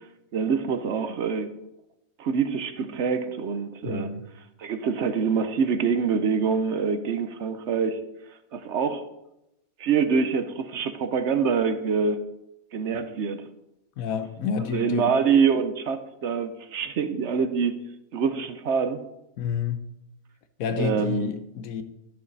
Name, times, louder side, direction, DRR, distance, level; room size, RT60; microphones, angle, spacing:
voice 1, 0.3-1.5 2.2-4.1 4.6-8.0 8.5-9.0 9.8-12.2 12.7-13.4 14.7-17.8 18.1-19.0 20.8-21.3, right 6 dB, 60° right, 0.9 m, -25 dB
voice 2, 3.8-4.2 14.0-15.1 19.4-19.8 20.6-21.8, left 6 dB, 75° left, 1.2 m, -29 dB
13.0 x 6.3 x 4.0 m
omnidirectional pair, 1.5 m